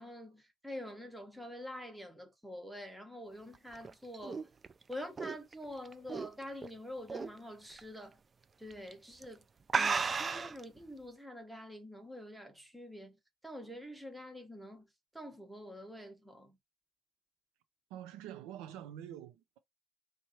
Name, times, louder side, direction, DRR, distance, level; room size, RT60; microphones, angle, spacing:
voice 1, 0.0-4.5 4.9-8.2 8.6-9.4 9.7-13.2 13.4-14.9 15.1-16.6, equal, 5° right, 1.0 m, -46 dB
sound 1, 3.5-6.7 7.1-7.4 7.8-7.9 8.7-8.9 9.2-9.3 9.7-10.6, right 4 dB, 20° right, 0.3 m, -34 dB
voice 2, 17.9-19.6, right 11 dB, 85° right, 0.8 m, -46 dB
3.2 x 2.5 x 4.2 m
cardioid pair, 140°, 0 cm